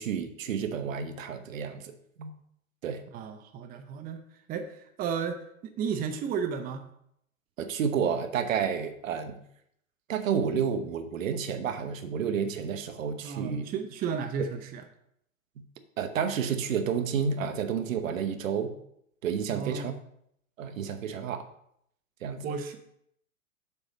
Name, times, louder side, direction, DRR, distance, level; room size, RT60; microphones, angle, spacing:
voice 1, 0.0-2.3 2.8-3.0 7.6-9.4 10.1-13.7 16.0-18.7 19.2-19.9 20.6-21.5 22.2-22.5, right 7 dB, 70° right, 9 dB, 1.1 m, -30 dB
voice 2, 3.1-4.2 4.5-6.8 13.2-14.8 19.5-20.0 22.4-22.8, right 6 dB, 20° right, 7 dB, 0.7 m, -33 dB
7.0 x 4.8 x 6.2 m, 0.72 s
hypercardioid pair, 110°, 41 cm